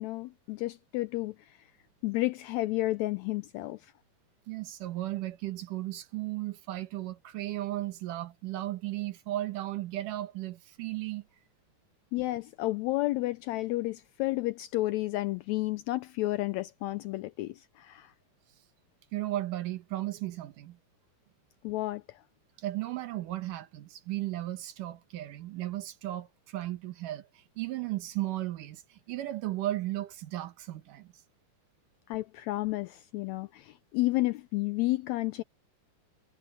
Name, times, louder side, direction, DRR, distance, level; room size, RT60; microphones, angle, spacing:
voice 1, 0.0-1.7 2.0-3.9 12.1-18.1 21.6-22.2 32.1-35.4, left 18 dB, 80° left, 1.6 m, -31 dB
voice 2, 4.5-11.2 19.1-20.8 22.6-31.1, right 15 dB, 85° right, 2.9 m, -35 dB
omnidirectional pair, 3.6 m